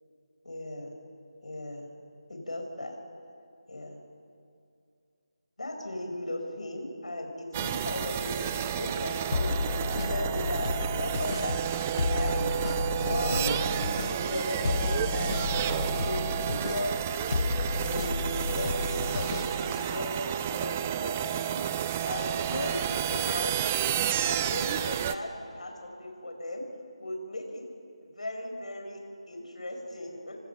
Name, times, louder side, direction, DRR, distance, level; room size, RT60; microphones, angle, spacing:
voice 1, 0.4-1.0 1.4-1.9 2.3-3.0 3.7-4.0 5.6-9.6 9.9-11.8 12.1-12.5 12.9-15.5 16.0-17.4 17.7-18.2 18.5-20.7 21.0-21.6 22.0-23.6 24.2-26.6 27.0-27.6 28.0-29.0 29.3-30.4, left 1 dB, 75° left, 2 dB, 5.6 m, -37 dB
sound 1, 7.5-25.1, right 10 dB, 15° right, 0.5 m, -31 dB
sound 2, 9.3-20.0, left 4 dB, 40° left, 0.9 m, -32 dB
30.0 x 25.0 x 5.8 m, 2.5 s
figure-of-eight pair, 170°, 4 cm